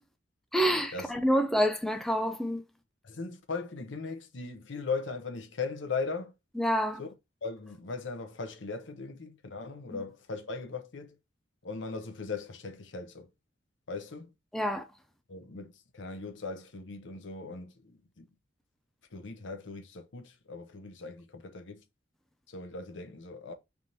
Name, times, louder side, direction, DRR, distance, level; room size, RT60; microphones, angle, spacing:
voice 1, 0.5-2.6 6.6-7.0 14.5-14.8, equal, ahead, 0.4 m, -27 dB
voice 2, 3.0-6.3 7.0-7.1 7.4-11.2 11.6-13.3 13.9-14.3 15.3-18.3 19.1-21.8 22.5-23.5, left 4 dB, 75° left, 0.8 m, -38 dB
3.5 x 2.9 x 3.9 m
head